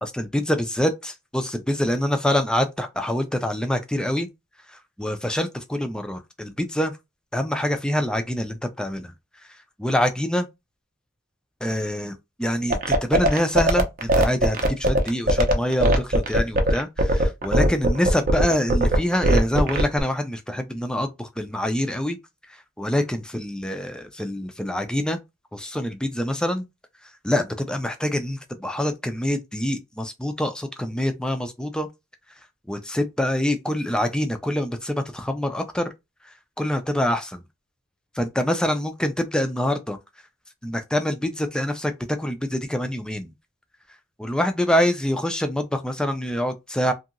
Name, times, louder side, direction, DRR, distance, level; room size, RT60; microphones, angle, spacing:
voice 1, 0.0-4.3 4.7-7.0 7.3-9.1 9.8-10.5 11.6-22.2 22.8-25.2 25.5-26.6 27.2-31.9 32.7-35.9 36.6-37.4 38.2-40.0 40.6-43.3 44.2-46.9, left 1 dB, 5° left, 0.3 m, -25 dB
sound 1, 12.7-20.0, right 1 dB, 45° right, 0.5 m, -19 dB
2.8 x 2.6 x 2.4 m
head